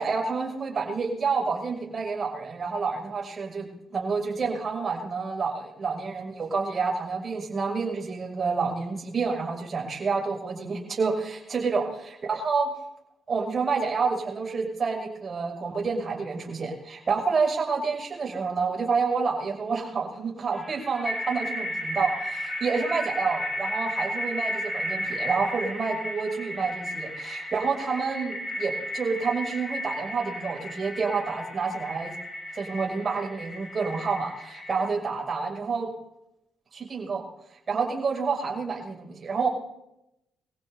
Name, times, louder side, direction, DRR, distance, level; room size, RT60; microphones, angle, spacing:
voice 1, 0.0-12.0 12.3-12.7 13.3-32.1 32.5-35.9 36.7-37.2 37.7-39.5, right 4 dB, 45° right, -1 dB, 6.6 m, -28 dB
sound 1, 20.5-34.8, equal, 20° left, 5.5 m, -34 dB
25.0 x 16.5 x 2.8 m, 0.85 s
cardioid pair, 85°, 0 cm